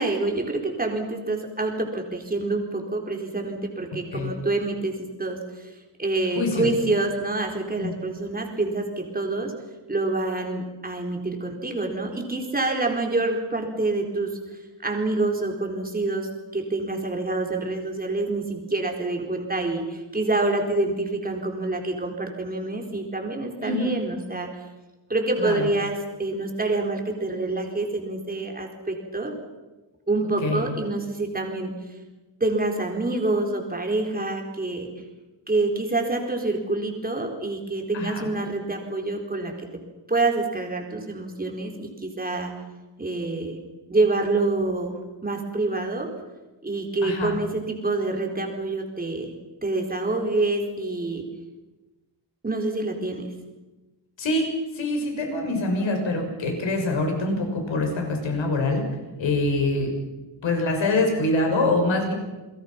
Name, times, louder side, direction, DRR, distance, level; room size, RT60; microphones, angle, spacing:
voice 1, 0.0-5.7 6.0-9.5 9.9-14.4 14.8-24.6 25.1-29.3 30.1-31.7 32.4-34.9 35.5-39.8 40.1-42.5 43.0-43.6 43.9-46.1 46.6-49.3 49.6-51.3 52.4-53.3, right 2 dB, 20° right, 2 dB, 4.3 m, -27 dB
voice 2, 6.3-6.7 7.7-7.9 23.6-23.9 25.4-25.7 30.4-30.7 37.9-38.3 47.0-47.3 54.2-54.5 54.7-58.8 59.2-59.9 60.4-62.1, left 2 dB, 80° left, 3 dB, 6.6 m, -24 dB
29.5 x 22.5 x 6.0 m, 1.1 s
wide cardioid pair, 150°, 45 cm